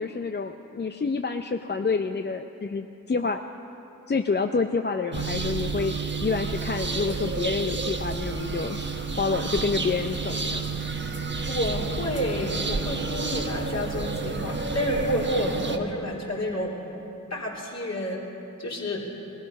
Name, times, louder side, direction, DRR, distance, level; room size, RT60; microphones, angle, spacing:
voice 1, 0.0-3.4 4.1-8.8 9.2-10.6, left 4 dB, 30° left, 6 dB, 0.6 m, -28 dB
sound 1, 5.1-15.8, right 4 dB, 30° right, 1.3 m, -30 dB
voice 2, 11.4-16.7 17.3-18.2 18.6-19.0, left 1 dB, 50° left, -4 dB, 3.5 m, -30 dB
19.5 x 13.5 x 5.4 m, 2.9 s
cardioid pair, 40°, 35 cm